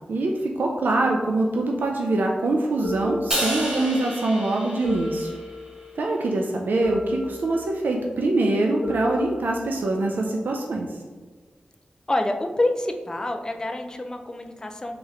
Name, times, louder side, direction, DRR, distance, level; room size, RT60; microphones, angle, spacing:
voice 1, 0.1-5.3 6.0-10.9, right 2 dB, 85° right, 0 dB, 0.3 m, -24 dB
sound 1, 2.8-4.0 4.8-6.0 6.8-8.0 8.8-10.0, left 1 dB, 75° left, 0.9 m, -33 dB
Crash cymbal, 3.3-5.7, equal, 25° right, 0.9 m, -30 dB
voice 2, 12.1-15.0, left 1 dB, 20° left, 4 dB, 0.3 m, -27 dB
3.5 x 2.9 x 3.1 m, 1.4 s
wide cardioid pair, 105°, 3 cm